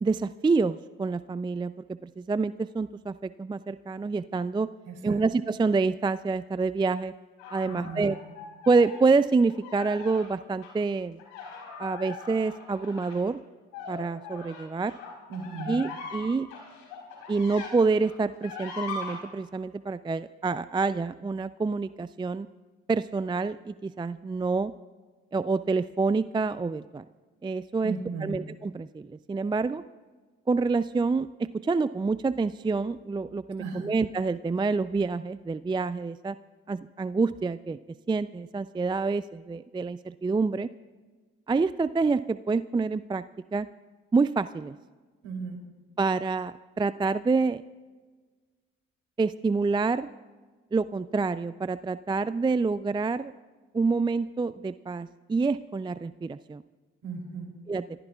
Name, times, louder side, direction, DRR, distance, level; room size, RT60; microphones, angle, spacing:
voice 1, 0.0-4.7 5.0-7.1 7.5-8.2 8.7-11.2 11.8-13.4 13.9-14.9 15.7-16.5 17.3-22.5 22.9-24.7 25.3-27.0 27.4-27.9 28.2-29.8 30.5-36.4 36.7-37.8 38.1-40.7 41.5-43.2 43.5-43.7 44.1-44.7 46.0-47.6 49.2-50.1 50.7-53.3 53.7-56.6 57.7-57.8, right 4 dB, 15° right, 15 dB, 0.4 m, -27 dB
voice 2, 4.8-5.2 7.6-8.1 15.3-15.7 27.8-28.4 33.6-33.9 45.2-45.6 57.0-57.5, right 4 dB, 75° right, 1 dB, 3.1 m, -36 dB
sound 1, 7.4-9.0 9.5-10.3 10.6-10.7 11.2-17.7 18.0-19.2, left 4 dB, 90° left, 4.0 m, -40 dB
28.5 x 14.5 x 2.4 m, 1.4 s
hypercardioid pair, 45°, 31 cm